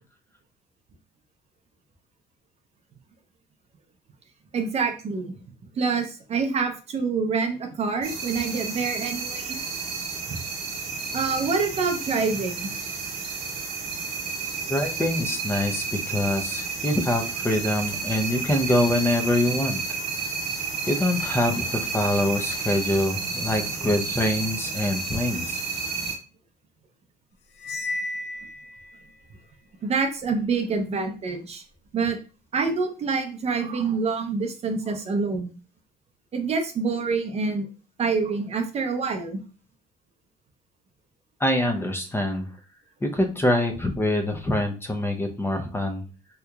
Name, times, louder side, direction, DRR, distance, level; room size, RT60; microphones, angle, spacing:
voice 1, 4.5-5.4 5.8-9.6 10.3-10.4 11.1-12.7 29.8-31.6 31.9-32.2 32.5-35.5 36.3-37.7 38.0-39.4, right 4 dB, 40° right, 4 dB, 0.6 m, -26 dB
sound 1, 8.0-26.1, right 4 dB, 75° right, 1.1 m, -31 dB
voice 2, 14.7-19.8 20.9-25.6 41.4-42.5 43.0-46.0, left 1 dB, 15° left, 4 dB, 0.5 m, -25 dB
Cymbal, 27.6-29.0, left 2 dB, 80° left, 0.5 m, -33 dB
3.6 x 2.9 x 2.3 m, 0.35 s
cardioid pair, 110°, 17 cm